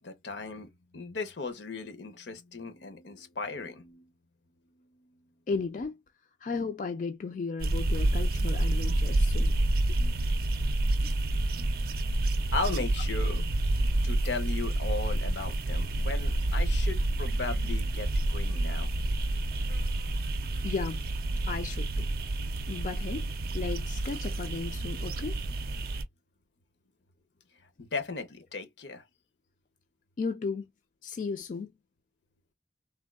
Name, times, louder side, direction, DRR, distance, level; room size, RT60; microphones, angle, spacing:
voice 1, 0.0-4.1 9.7-10.2 10.9-11.2 12.5-13.4 14.0-18.9 27.8-29.0, left 3 dB, 75° left, 0.7 m, -37 dB
voice 2, 5.5-6.0 6.4-9.5 9.9-10.0 20.6-21.1 21.5-22.1 22.7-23.3 23.5-25.4 30.2-30.7 31.0-31.7, left 4 dB, 45° left, 0.3 m, -35 dB
sound 1, 7.6-26.0, right 1 dB, 55° right, 0.5 m, -28 dB
3.4 x 2.2 x 2.3 m
head